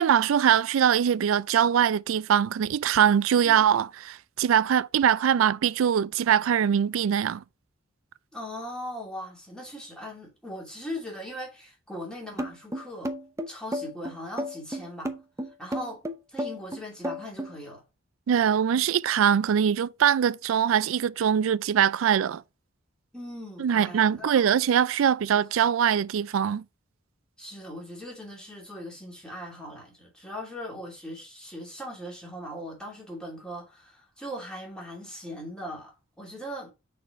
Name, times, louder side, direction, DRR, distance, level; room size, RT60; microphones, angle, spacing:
voice 1, 0.0-7.4 18.3-22.4 23.6-26.6, right 8 dB, 80° right, 0.3 m, -22 dB
voice 2, 8.3-13.1 13.5-15.1 15.6-16.0 16.3-17.8 23.1-24.4 27.4-36.7, equal, 5° left, 2.8 m, -39 dB
sound 1, 12.4-17.5, equal, 15° right, 0.7 m, -32 dB
6.4 x 4.3 x 4.7 m
head